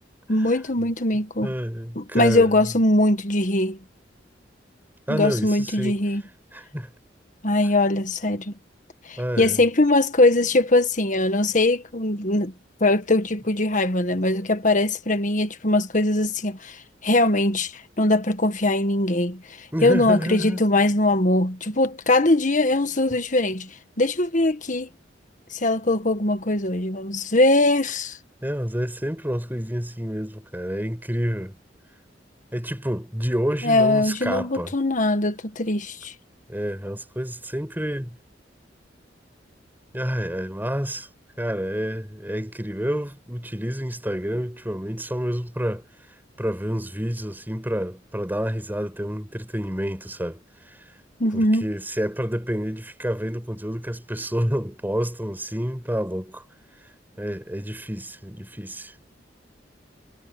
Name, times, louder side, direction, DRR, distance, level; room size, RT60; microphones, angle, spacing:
voice 1, 0.3-1.5 1.9-3.8 5.1-6.2 7.4-8.5 9.1-12.5 12.8-23.7 24.0-24.9 25.5-28.2 33.6-36.1 51.2-51.7, left 2 dB, 45° left, 1.6 m, -21 dB
voice 2, 1.4-2.6 5.1-6.0 6.5-6.9 9.2-9.6 19.7-20.6 28.4-31.5 32.5-34.7 36.5-38.1 39.9-41.1 41.4-45.8 46.4-50.4 51.3-56.4 57.2-58.9, equal, 10° right, 5.9 m, -28 dB
head